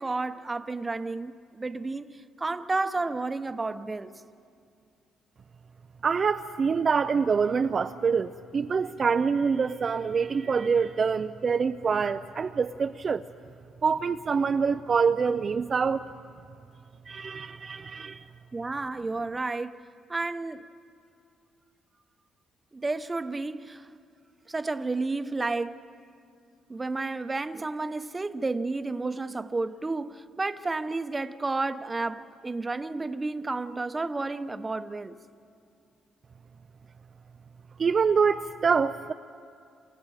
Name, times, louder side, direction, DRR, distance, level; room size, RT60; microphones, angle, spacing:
voice 1, 0.0-4.1 18.5-19.8 20.1-20.6 22.7-23.9 24.5-25.8 26.7-35.2, right 3 dB, 20° right, 0.9 m, -31 dB
voice 2, 6.0-13.2 13.8-16.0 17.1-18.2 37.8-39.1, right 5 dB, 45° right, 0.5 m, -25 dB
28.5 x 28.0 x 5.0 m
cardioid pair, 90°, 0 cm